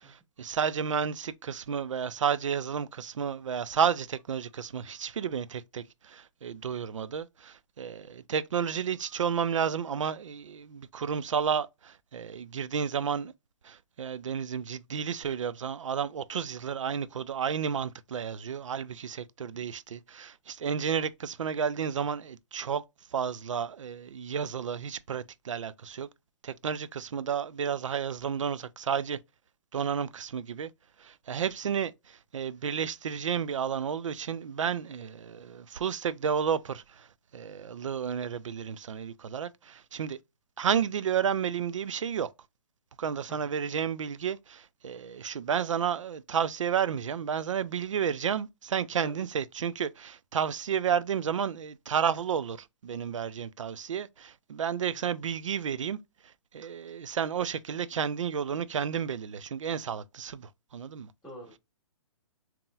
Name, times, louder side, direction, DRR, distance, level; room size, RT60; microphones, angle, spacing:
voice 1, 0.4-13.3 13.7-22.8 23.1-26.1 26.4-29.2 29.7-30.7 31.3-31.9 32.3-36.8 37.3-40.2 40.6-42.3 43.0-52.6 52.8-56.0 56.5-60.5 60.7-61.1, right 7 dB, 75° right, 0.4 m, -31 dB
voice 2, 61.2-61.6, equal, 5° left, 1.4 m, -47 dB
3.7 x 2.9 x 2.4 m
hypercardioid pair, 135°, 16 cm